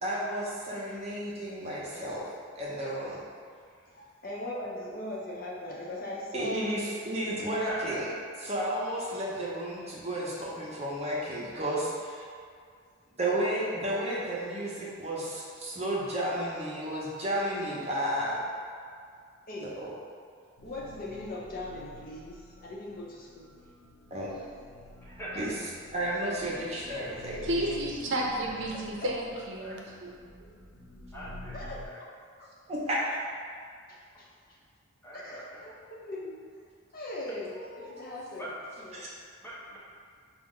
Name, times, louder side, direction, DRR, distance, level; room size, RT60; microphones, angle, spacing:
voice 1, 0.0-2.2 2.5-3.2 6.3-8.0 8.4-12.2 13.2-18.4 19.8-19.9 24.1-24.5 25.4-25.5 25.9-27.7 32.7-33.2 37.6-37.9 38.9-39.1, right 1 dB, 30° right, -5 dB, 0.7 m, -32 dB
voice 2, 3.9-6.8 19.5-19.8 20.6-23.5 28.4-29.1 31.5-31.9 32.4-32.5 33.9-34.3 35.1-35.7 36.1-39.1, left 1 dB, 45° left, -4 dB, 0.6 m, -40 dB
voice 3, 7.5-8.0 25.0-25.6 29.6-29.7 31.1-31.6 31.8-32.0 35.0-35.6 38.4-38.5 39.4-39.8, right 1 dB, 10° left, -8 dB, 0.7 m, -42 dB
sound 1, 20.6-31.9, left 1 dB, 85° left, 0.8 m, -49 dB
voice 4, 27.4-29.8, right 1 dB, 65° right, -2 dB, 0.6 m, -31 dB
5.7 x 2.1 x 3.7 m, 2.1 s
head